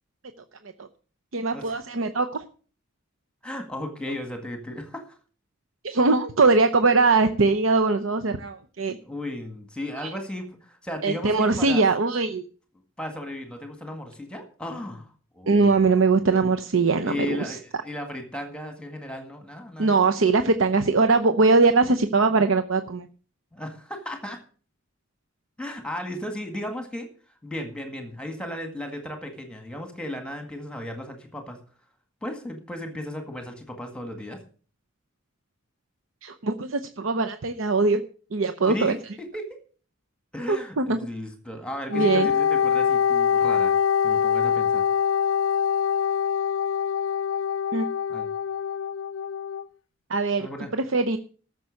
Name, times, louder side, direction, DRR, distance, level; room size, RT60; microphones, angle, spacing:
voice 1, 1.3-2.4 5.8-9.0 10.0-10.1 11.0-12.4 15.5-17.6 19.8-23.1 36.2-38.0 38.3-38.9 40.5-41.0 41.9-42.3 47.7-47.9 50.1-50.5 50.7-51.2, right 3 dB, 90° right, 8 dB, 0.8 m, -21 dB
voice 2, 3.4-5.1 9.0-11.8 13.0-16.0 17.0-20.0 23.5-24.4 25.6-27.1 27.4-31.6 32.2-34.4 38.7-39.0 39.3-39.6 40.3-43.7 44.0-44.9 48.1-48.3 50.4-50.7, left 1 dB, 5° left, 5 dB, 1.9 m, -35 dB
Wind instrument woodwind instrument, 41.9-49.6, left 8 dB, 80° left, 0.5 m, -24 dB
14.0 x 6.9 x 6.5 m, 0.41 s
head